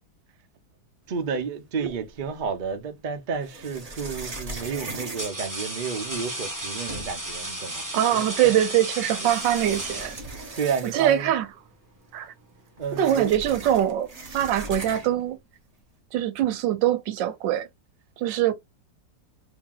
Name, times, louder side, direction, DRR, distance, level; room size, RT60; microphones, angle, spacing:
voice 1, 1.1-8.2 9.2-9.3 10.6-11.3 12.8-13.4, right 6 dB, 70° right, 0.4 m, -31 dB
sound 1, 1.8-2.6 3.4-6.2 6.6-6.7 6.9-7.4 8.4-8.5 9.1-11.3 11.7-11.8 12.0-15.3, right 2 dB, 30° right, 0.7 m, -39 dB
sound 2, 3.5-3.8 4.6-10.6, right 1 dB, 10° right, 1.1 m, -34 dB
voice 2, 7.9-10.2 10.9-11.4 12.1-12.3 13.0-14.1 14.3-15.4 16.1-17.7 18.2-18.5, right 11 dB, 85° right, 1.3 m, -23 dB
3.0 x 2.7 x 3.7 m
omnidirectional pair, 2.0 m